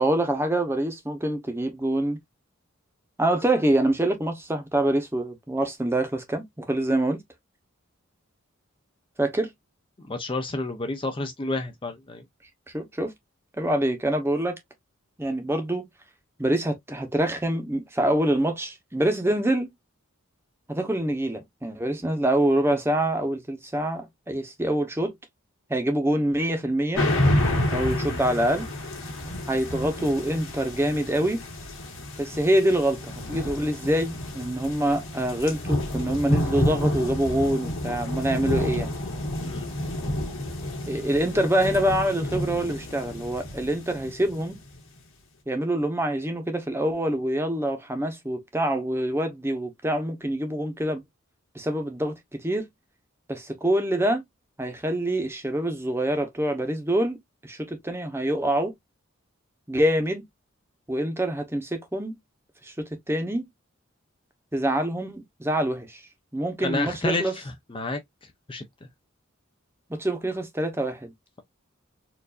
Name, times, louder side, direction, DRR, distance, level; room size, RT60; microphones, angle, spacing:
voice 1, 0.0-2.2 3.2-7.2 9.2-9.5 12.7-13.1 13.6-14.6 15.2-15.9 16.4-19.7 20.7-25.1 25.7-27.0 27.7-28.7 29.5-31.4 32.2-38.9 40.9-44.6 45.5-51.0 51.5-52.1 52.4-52.7 53.3-54.2 54.6-58.7 59.7-60.2 60.9-62.2 62.6-63.5 64.5-66.0 66.3-67.3 69.9-71.1, right 1 dB, 10° right, 0.9 m, -25 dB
voice 2, 10.0-12.2 39.4-39.7 66.6-68.6, left 2 dB, 25° left, 0.5 m, -30 dB
sound 1, 26.9-44.8, left 1 dB, 80° left, 1.8 m, -29 dB
4.5 x 2.5 x 2.5 m
head